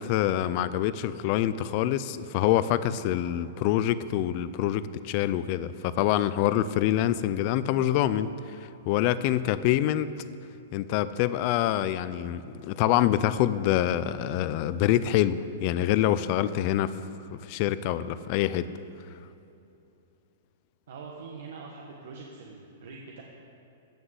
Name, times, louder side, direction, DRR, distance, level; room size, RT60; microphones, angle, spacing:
voice 1, 0.0-8.6 8.9-10.1 10.7-16.9 17.3-18.7, left 12 dB, 30° left, 15 dB, 0.4 m, -26 dB
voice 2, 20.9-23.2, right 4 dB, 60° right, -1 dB, 1.4 m, -43 dB
15.0 x 6.3 x 8.0 m, 2.8 s
hypercardioid pair, 180°, 0 cm